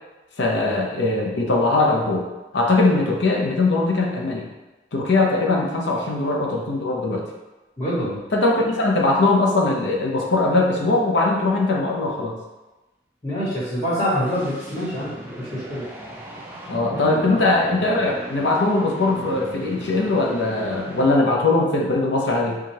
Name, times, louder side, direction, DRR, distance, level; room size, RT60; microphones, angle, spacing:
voice 1, 0.4-2.2 2.5-4.5 4.9-7.3 8.3-12.4 16.7-22.6, left 2 dB, 75° left, 0 dB, 0.7 m, -20 dB
voice 2, 7.8-8.2 13.2-15.1 15.4-15.9 16.9-17.4, equal, 30° left, -11 dB, 1.3 m, -25 dB
sound 1, 13.8-21.5, equal, 10° right, 0.5 m, -37 dB
4.7 x 2.4 x 2.8 m, 1.1 s
head